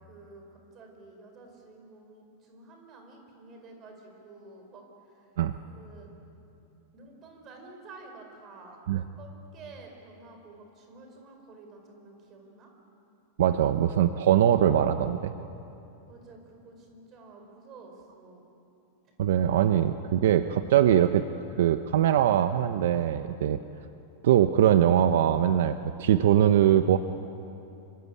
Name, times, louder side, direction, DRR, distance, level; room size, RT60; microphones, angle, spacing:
voice 1, 0.0-5.3 5.6-6.1 6.9-8.8 9.2-12.7 16.1-18.4, right 3 dB, 25° right, 3 dB, 4.5 m, -50 dB
voice 2, 13.4-15.3 19.2-21.2 21.6-23.6 24.2-27.0, right 10 dB, 70° right, 10 dB, 0.9 m, -22 dB
26.5 x 24.5 x 8.6 m, 2.8 s
supercardioid pair, 170°, 0 cm